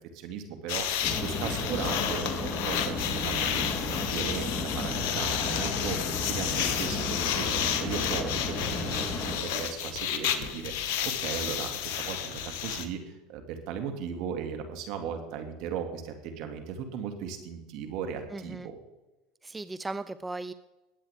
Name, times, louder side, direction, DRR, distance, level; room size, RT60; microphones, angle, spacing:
voice 1, 0.1-2.3 2.6-18.8, right 7 dB, 60° right, 5 dB, 2.2 m, -37 dB
sound 1, 0.7-12.9, left 9 dB, 65° left, 1.4 m, -31 dB
sound 2, 1.0-9.4, left 2 dB, 20° left, 3.3 m, -33 dB
voice 2, 18.3-18.7 19.4-20.5, right 2 dB, 15° right, 14 dB, 0.4 m, -37 dB
20.5 x 8.5 x 3.6 m, 1.1 s
hypercardioid pair, 85°, 0 cm